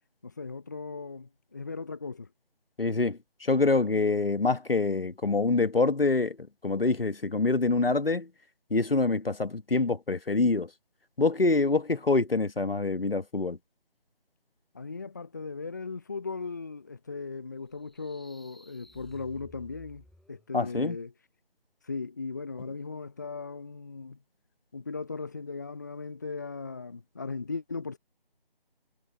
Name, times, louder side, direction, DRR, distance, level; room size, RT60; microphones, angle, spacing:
voice 1, 0.2-2.3 14.7-21.1 21.8-24.2 24.7-28.0, left 4 dB, 20° left, 1.1 m, -38 dB
voice 2, 2.8-6.4 6.6-8.3 8.7-10.7 11.2-13.6 20.5-21.0, left 3 dB, 70° left, 1.6 m, -25 dB
sound 1, 17.7-20.5, left 1 dB, ahead, 5.1 m, -56 dB
figure-of-eight pair, 165°, 29 cm